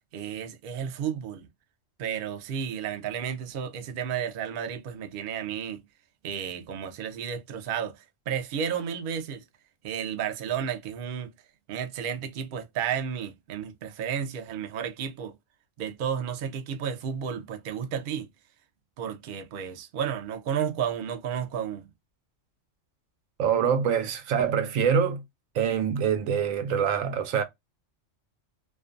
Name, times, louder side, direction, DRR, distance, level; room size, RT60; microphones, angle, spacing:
voice 1, 0.1-1.5 2.0-5.8 6.2-9.4 9.8-11.3 11.7-15.3 15.8-18.3 19.0-21.9, right 8 dB, 60° right, 0.5 m, -32 dB
voice 2, 23.4-25.2 25.5-27.4, right 7 dB, 85° right, 1.0 m, -25 dB
2.5 x 2.2 x 2.4 m
omnidirectional pair, 1.3 m